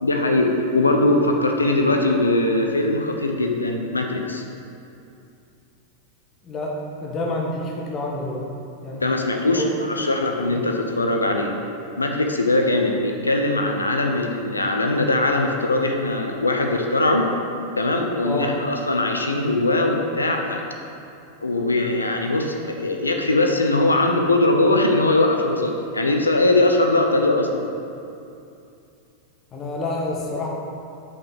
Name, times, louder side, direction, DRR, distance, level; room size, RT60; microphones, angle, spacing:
voice 1, 0.0-4.4 9.0-11.5 12.0-17.3 17.8-20.6 21.4-27.7, left 2 dB, 80° left, 2 dB, 0.7 m, -21 dB
voice 2, 6.4-8.4 8.8-9.0 9.5-9.9 10.5-10.7 18.2-18.5 29.5-30.5, left 2 dB, 25° left, -2 dB, 1.3 m, -28 dB
6.0 x 5.6 x 6.0 m, 2.6 s
figure-of-eight pair, 90°, 0 cm